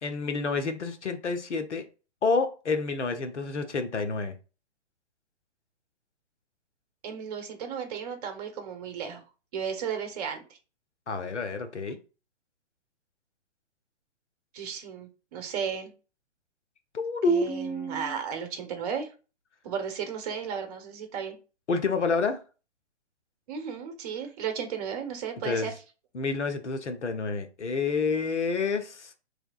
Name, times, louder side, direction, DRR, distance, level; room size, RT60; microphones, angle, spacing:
voice 1, 0.0-1.8 2.2-4.3 11.1-12.0 16.9-18.2 21.7-22.4 25.4-25.7 26.1-29.1, left 3 dB, 75° left, 0.9 m, -28 dB
voice 2, 7.0-9.2 9.5-10.4 14.5-15.9 17.3-19.1 19.6-21.4 23.5-25.7, right 7 dB, 35° right, 1.0 m, -34 dB
4.7 x 3.4 x 2.4 m
figure-of-eight pair, 130°, 35 cm